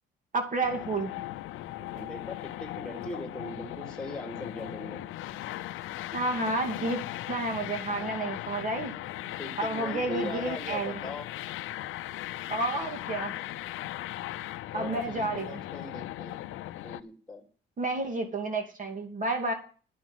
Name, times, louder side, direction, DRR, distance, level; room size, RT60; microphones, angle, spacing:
voice 1, 0.3-1.1 6.1-7.0 7.3-8.9 9.6-11.0 12.5-13.3 14.7-15.6 17.8-19.5, right 2 dB, 40° right, 4 dB, 2.7 m, -30 dB
sound 1, 0.6-17.0, left 15 dB, 90° left, 0.6 m, -38 dB
voice 2, 1.8-5.0 9.4-11.3 14.7-16.4 16.8-17.4, left 1 dB, 5° left, 3 dB, 3.3 m, -40 dB
11.0 x 6.2 x 9.1 m, 0.40 s
cardioid pair, 90°, 20 cm